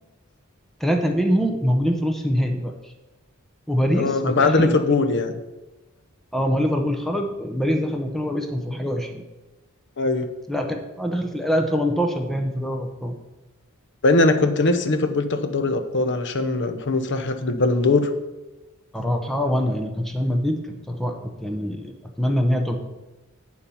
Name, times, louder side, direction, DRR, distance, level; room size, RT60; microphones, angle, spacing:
voice 1, 0.8-2.9 3.7-4.7 6.3-9.3 10.5-13.2 18.9-22.8, equal, ahead, 3 dB, 0.7 m, -24 dB
voice 2, 3.9-5.3 10.0-10.3 14.0-18.1, left 3 dB, 55° left, 9 dB, 0.8 m, -21 dB
8.4 x 7.1 x 5.5 m, 1.1 s
head